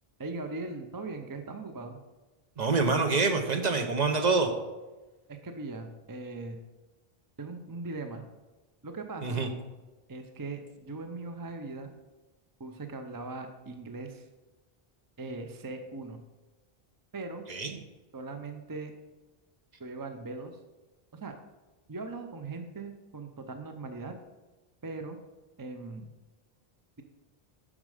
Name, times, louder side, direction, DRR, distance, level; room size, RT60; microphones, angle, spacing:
voice 1, 0.2-2.0 5.3-6.6 7.4-8.2 8.8-9.4 10.1-11.9 12.6-14.3 15.2-16.2 17.1-17.4 18.1-18.9 19.8-20.6 21.1-21.4 21.9-24.1 24.8-25.2 25.6-26.1, right 3 dB, 25° right, 6 dB, 0.5 m, -39 dB
voice 2, 2.6-4.5 9.2-9.5 17.5-17.8, right 4 dB, 45° right, 5 dB, 0.8 m, -26 dB
7.3 x 6.4 x 4.9 m, 1.2 s
omnidirectional pair, 1.0 m